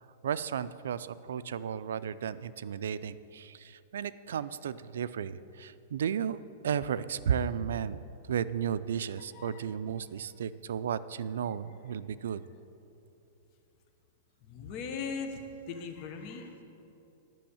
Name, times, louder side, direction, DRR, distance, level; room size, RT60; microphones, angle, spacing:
voice 1, 0.2-6.4 6.6-8.0 8.3-12.4, right 8 dB, 85° right, 16 dB, 0.4 m, -34 dB
voice 2, 9.3-9.6 14.4-16.6, left 5 dB, 40° left, 5 dB, 1.2 m, -39 dB
10.5 x 6.2 x 8.6 m, 2.8 s
supercardioid pair, 155°, 0 cm